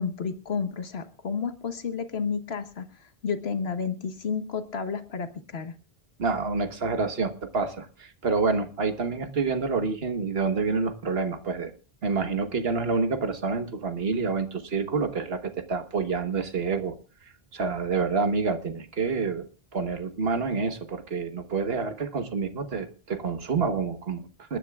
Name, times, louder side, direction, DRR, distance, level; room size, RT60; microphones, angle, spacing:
voice 1, 0.0-5.7, left 6 dB, 90° left, 9 dB, 1.5 m, -31 dB
voice 2, 6.2-11.7 12.0-16.9 17.5-19.5 19.7-24.6, right 4 dB, 75° right, 8 dB, 1.5 m, -28 dB
28.5 x 10.0 x 2.4 m, 0.32 s
omnidirectional pair, 1.0 m